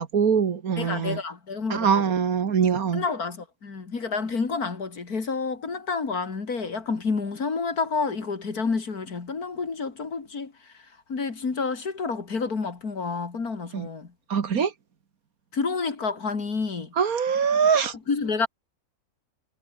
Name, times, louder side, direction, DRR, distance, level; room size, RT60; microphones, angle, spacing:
voice 1, 0.0-1.2 1.7-3.0 13.7-13.9 14.3-14.7 17.0-17.9, right 6 dB, 65° right, 1.9 m, -23 dB
voice 2, 0.8-2.1 2.9-14.1 15.5-16.9 18.1-18.5, left 4 dB, 70° left, 3.1 m, -29 dB
omnidirectional pair, 1.6 m